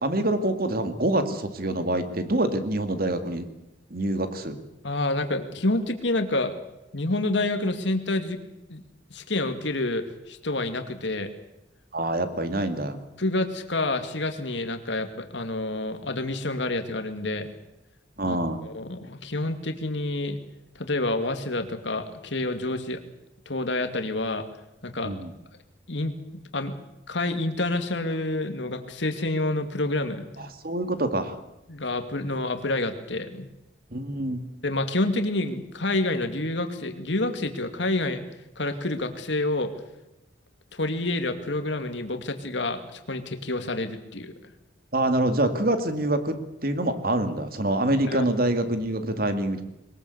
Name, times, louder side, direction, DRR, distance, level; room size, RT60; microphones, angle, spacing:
voice 1, 0.0-3.5 3.9-4.6 11.9-13.0 18.2-18.6 25.0-25.3 30.4-31.4 33.9-34.4 44.9-49.6, right 1 dB, 50° right, 8 dB, 2.3 m, -26 dB
voice 2, 4.8-6.5 6.9-8.4 8.7-8.8 9.1-11.3 13.2-17.5 18.3-18.4 18.6-20.4 20.8-23.0 23.5-24.5 24.8-25.1 25.9-26.8 27.1-30.3 31.7-33.5 34.6-38.2 38.6-39.7 40.7-44.3 48.1-48.3, left 2 dB, 75° left, 7 dB, 2.4 m, -28 dB
22.0 x 20.5 x 8.1 m, 0.92 s
head